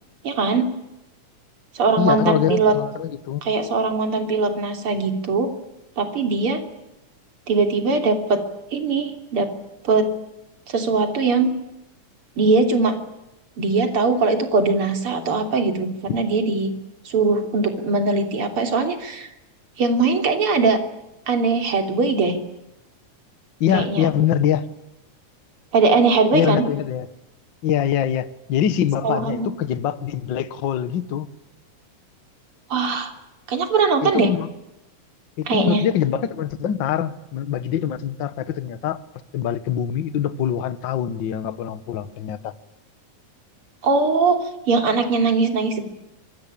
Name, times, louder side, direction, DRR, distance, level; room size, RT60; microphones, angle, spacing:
voice 1, 0.2-0.7 1.7-2.7 3.4-5.5 6.0-6.6 7.5-8.4 8.7-9.5 9.8-10.1 10.7-11.5 12.4-13.0 13.6-16.7 17.1-19.3 19.8-20.8 21.3-22.4 23.7-24.1 25.7-26.7 29.0-29.5 32.7-33.1 33.5-34.3 35.5-35.8 43.8-44.4 44.7-45.8, right 4 dB, 45° right, 3.9 m, -20 dB
voice 2, 2.0-3.4 16.1-16.2 23.6-24.7 26.3-27.1 27.6-31.3 34.0-34.5 35.4-39.0 39.3-42.5, left 9 dB, 50° left, 1.5 m, -24 dB
26.0 x 24.5 x 8.7 m
omnidirectional pair, 3.5 m